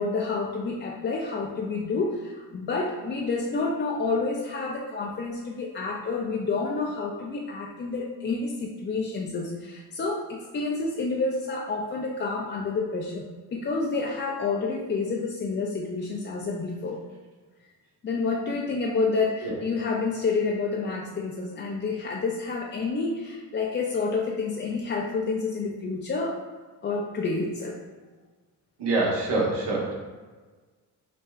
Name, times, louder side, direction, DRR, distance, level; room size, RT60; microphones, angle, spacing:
voice 1, 0.0-13.2 13.5-17.0 18.0-26.4 26.8-27.8, left 4 dB, 30° left, -1 dB, 0.3 m, -29 dB
voice 2, 28.8-29.9, right 2 dB, 75° right, -4 dB, 1.2 m, -25 dB
5.5 x 2.3 x 2.4 m, 1.4 s
cardioid pair, 75°, 41 cm